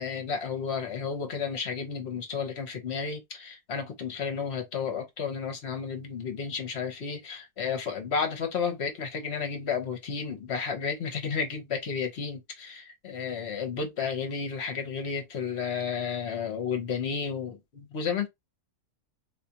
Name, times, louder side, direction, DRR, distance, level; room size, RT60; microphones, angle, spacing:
voice 1, 0.0-18.3, left 6 dB, 50° left, 1.0 m, -32 dB
4.3 x 2.4 x 2.8 m
omnidirectional pair, 1.6 m